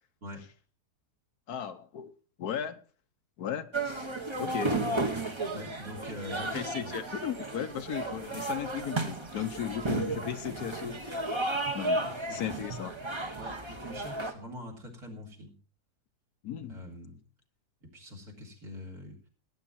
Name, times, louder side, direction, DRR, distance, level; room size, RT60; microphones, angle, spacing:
voice 1, 1.5-2.1 2.4-2.8 3.4-4.1 4.4-4.8 6.5-11.2 11.7-12.0 12.3-12.9 16.4-16.8, left 9 dB, 70° left, 1.3 m, -36 dB
sound 1, 3.7-14.3, right 2 dB, 20° right, 1.1 m, -33 dB
voice 2, 5.5-6.9 12.0-12.6 13.4-15.6 16.7-17.2 17.8-19.3, left 1 dB, 65° right, 4.1 m, -44 dB
18.0 x 9.2 x 4.2 m
omnidirectional pair, 1.7 m